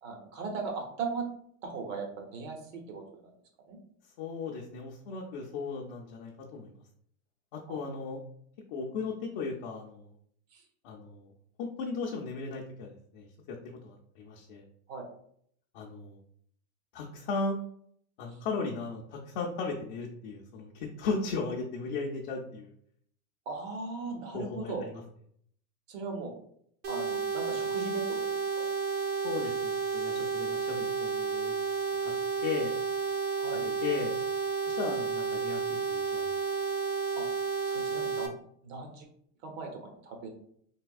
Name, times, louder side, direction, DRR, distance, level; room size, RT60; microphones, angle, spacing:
voice 1, 0.0-1.3 1.6-3.3 3.7-3.8 7.7-7.8 10.5-10.6 14.9-15.0 23.5-24.8 25.9-26.3 26.9-28.7 33.4-33.6 37.2-37.3 37.6-38.4 38.6-39.1 39.4-40.3, right 4 dB, 65° right, 2 dB, 1.0 m, -38 dB
voice 2, 4.2-6.8 7.5-8.2 8.7-10.1 10.8-11.3 11.6-14.6 15.7-16.2 16.9-17.6 18.2-22.8 24.3-25.0 29.2-31.5 32.0-32.1 32.4-32.7 33.6-34.1 34.7-35.6 35.9-36.2, left 4 dB, 40° left, -2 dB, 0.4 m, -36 dB
sound 1, 26.8-38.3, right 5 dB, 30° right, 0.4 m, -31 dB
3.4 x 2.7 x 2.3 m, 0.65 s
supercardioid pair, 145°, 43 cm